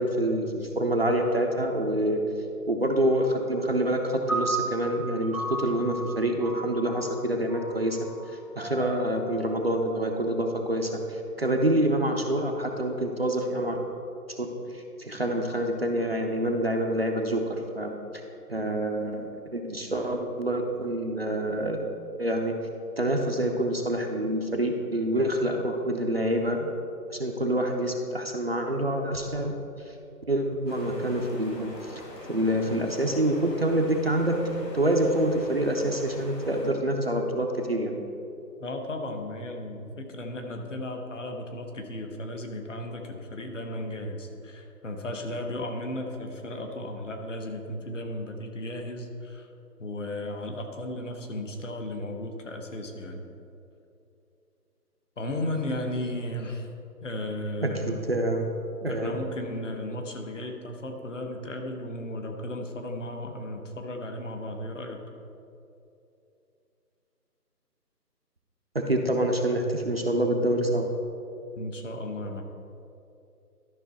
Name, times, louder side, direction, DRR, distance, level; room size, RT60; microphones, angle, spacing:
voice 1, 0.0-2.2 2.7-8.0 8.6-13.8 14.4-14.5 14.7-17.9 18.5-21.8 22.2-22.5 23.0-26.7 27.1-29.5 30.3-32.0 32.3-34.3 34.7-37.9 57.6-58.5 58.8-59.1 68.7-70.9, right 1 dB, 40° right, 2 dB, 0.6 m, -26 dB
sound 1, 4.3-10.7, right 2 dB, 15° left, 0.8 m, -36 dB
sound 2, 30.7-36.7, left 1 dB, 90° left, 1.9 m, -43 dB
voice 2, 38.6-49.5 49.8-53.2 55.2-56.7 57.0-58.0 58.9-65.0 71.5-72.4, left 1 dB, 50° left, 4 dB, 1.1 m, -35 dB
12.5 x 5.5 x 4.1 m, 2.7 s
figure-of-eight pair, 160°, 48 cm